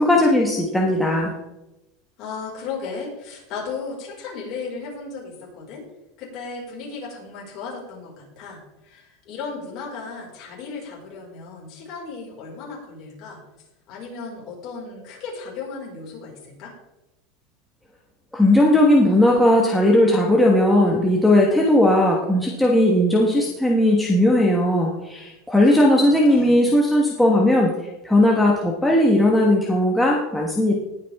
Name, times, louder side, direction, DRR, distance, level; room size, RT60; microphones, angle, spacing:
voice 1, 0.0-1.3 18.3-27.7 28.0-30.7, left 1 dB, ahead, -3 dB, 1.4 m, -17 dB
voice 2, 2.2-5.8 6.2-13.4 13.9-16.7 25.6-26.6, left 4 dB, 40° left, -3 dB, 5.2 m, -35 dB
19.5 x 8.4 x 3.6 m, 0.96 s
supercardioid pair, 165°, 0 cm